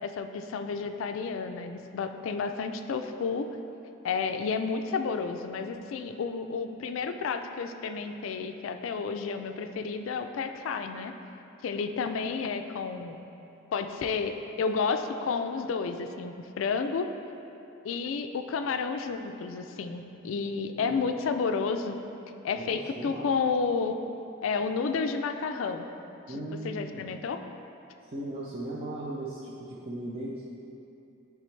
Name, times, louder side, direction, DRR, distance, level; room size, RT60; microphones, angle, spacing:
voice 1, 0.0-3.5 4.0-11.1 11.6-13.3 13.7-17.1 17.8-22.0 22.4-24.0 24.4-25.9 26.3-26.4 26.6-27.4, left 5 dB, 75° left, 7 dB, 0.3 m, -31 dB
voice 2, 22.5-23.2 26.3-27.0 28.1-30.4, right 1 dB, 30° right, -5 dB, 0.5 m, -37 dB
9.8 x 3.4 x 3.2 m, 2.8 s
head